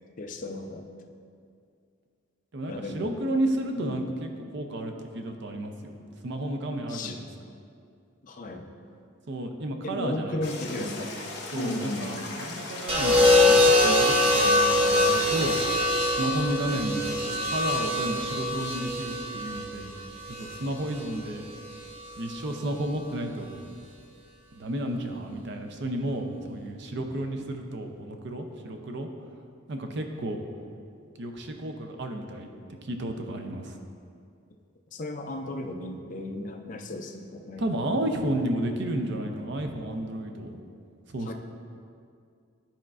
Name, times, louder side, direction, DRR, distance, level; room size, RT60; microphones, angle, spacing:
voice 1, 0.2-0.9 2.7-3.1 3.8-4.0 6.9-7.2 8.2-8.7 9.8-11.1 11.6-12.3 16.7-16.8 34.9-38.0 41.3-41.4, left 2 dB, 40° left, 4 dB, 0.4 m, -35 dB
voice 2, 2.5-6.0 6.2-7.3 9.3-10.4 10.7-11.0 11.5-15.6 16.2-19.9 20.3-21.5 22.2-23.6 24.5-29.1 29.7-30.4 31.2-32.5 32.8-33.8 37.6-40.6 41.1-41.3, right 1 dB, 55° right, 4 dB, 0.5 m, -32 dB
sound 1, 10.4-15.6, left 2 dB, 55° left, 1.1 m, -38 dB
sound 2, 12.9-21.0 22.3-22.7, left 1 dB, 25° right, 0.9 m, -23 dB
11.5 x 4.3 x 2.5 m, 2.3 s
head